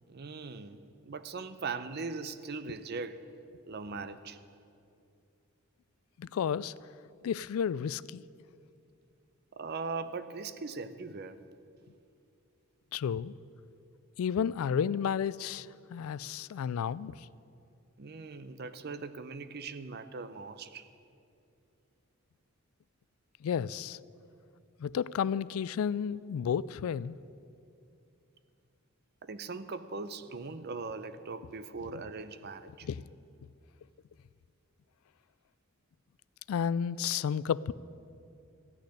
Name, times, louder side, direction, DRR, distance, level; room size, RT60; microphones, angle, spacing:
voice 1, 0.1-0.8 1.1-3.2 3.7-4.4 9.5-11.4 18.0-20.9 29.2-32.9, right 4 dB, 50° right, 0.6 m, -40 dB
voice 2, 6.2-6.7 7.2-8.2 12.9-13.3 14.2-17.1 23.4-24.0 24.8-27.2 32.8-33.0 36.5-37.7, left 7 dB, 80° left, 0.3 m, -32 dB
14.5 x 6.6 x 9.8 m
head